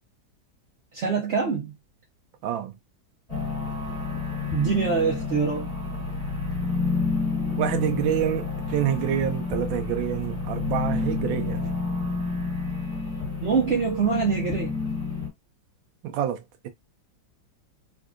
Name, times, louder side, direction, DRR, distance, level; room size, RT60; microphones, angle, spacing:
voice 1, 0.9-1.7 4.5-5.7 13.4-14.7, right 5 dB, 55° right, 0.8 m, -24 dB
voice 2, 2.4-2.7 7.6-11.7 16.0-16.7, right 10 dB, 85° right, 1.4 m, -27 dB
sound 1, 3.3-15.3, left 4 dB, 10° left, 1.4 m, -29 dB
3.7 x 2.5 x 2.4 m
omnidirectional pair, 2.1 m